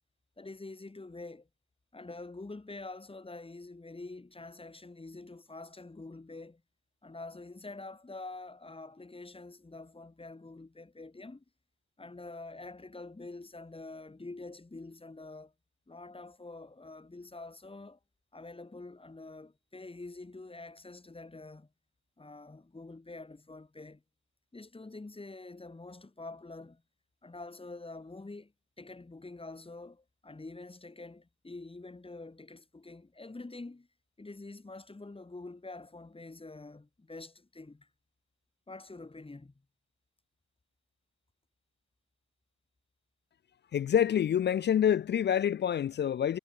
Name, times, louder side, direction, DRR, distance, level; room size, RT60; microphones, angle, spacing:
voice 1, 0.4-1.5 1.9-6.6 7.0-11.4 12.0-15.5 15.9-18.0 18.3-21.7 22.2-24.0 24.5-26.8 27.2-33.9 34.2-37.9 38.7-39.5, left 2 dB, 20° left, 7.0 m, -46 dB
voice 2, 43.7-46.4, left 9 dB, 35° left, 0.4 m, -27 dB
cardioid pair, 90°, 30 cm